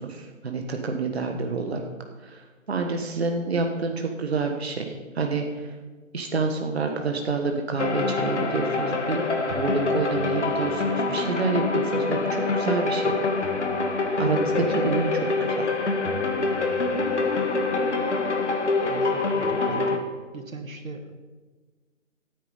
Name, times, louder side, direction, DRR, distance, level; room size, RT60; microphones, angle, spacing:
voice 1, 0.0-1.8 2.2-5.7 6.1-13.2 14.2-15.7, right 4 dB, 50° right, 3 dB, 1.4 m, -28 dB
sound 1, 7.8-20.0, left 3 dB, 60° left, 1.7 m, -25 dB
voice 2, 18.8-20.1 20.3-21.1, right 2 dB, 85° right, 6 dB, 1.9 m, -39 dB
13.5 x 9.1 x 5.5 m, 1.4 s
figure-of-eight pair, 160°, 40 cm